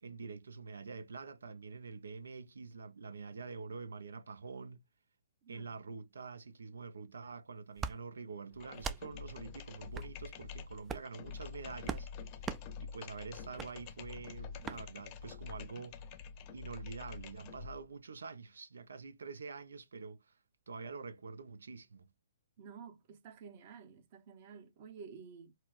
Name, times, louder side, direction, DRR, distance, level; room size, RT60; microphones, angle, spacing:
voice 1, 0.0-4.8 5.5-12.1 12.8-16.0 16.5-20.3 20.7-22.1, right 4 dB, 80° right, 0.6 m, -46 dB
sound 1, 7.8-8.0 8.8-9.0 9.9-10.1 10.8-11.1 11.8-12.1 12.4-12.6 13.6-13.7 14.6-14.8, right 6 dB, 15° right, 0.3 m, -39 dB
sound 2, 8.5-17.8, left 6 dB, 35° left, 0.7 m, -47 dB
voice 2, 22.6-25.5, right 6 dB, 45° right, 0.9 m, -51 dB
4.3 x 2.1 x 2.5 m
hypercardioid pair, 135°, 0 cm